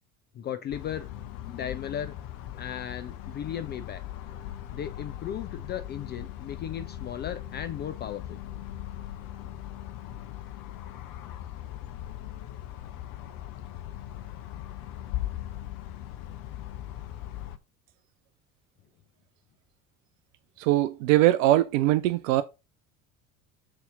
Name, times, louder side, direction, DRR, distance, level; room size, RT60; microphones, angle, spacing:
voice 1, 0.3-1.1 1.5-2.1 2.6-4.0 4.7-8.4, left 9 dB, 25° left, 0.3 m, -36 dB
sound 1, 0.7-17.6, left 12 dB, 50° left, 0.8 m, -39 dB
voice 2, 20.6-22.4, right 15 dB, 60° right, 0.5 m, -22 dB
6.7 x 4.1 x 3.8 m
figure-of-eight pair, 60°, 44 cm